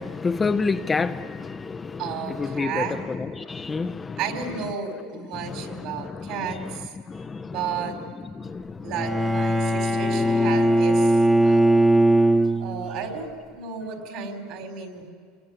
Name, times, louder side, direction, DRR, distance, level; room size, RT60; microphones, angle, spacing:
voice 1, 0.0-4.2 5.3-8.0 8.4-9.0 9.7-9.8, left 4 dB, 15° left, 9 dB, 0.6 m, -30 dB
voice 2, 2.0-3.0 4.2-6.9 7.5-8.0 8.8-11.6 12.6-15.1, right 7 dB, 55° right, 5 dB, 4.3 m, -33 dB
Bowed string instrument, 8.9-13.0, right 1 dB, 5° right, 1.2 m, -20 dB
26.0 x 21.0 x 9.6 m, 2.2 s
supercardioid pair, 150°, 0 cm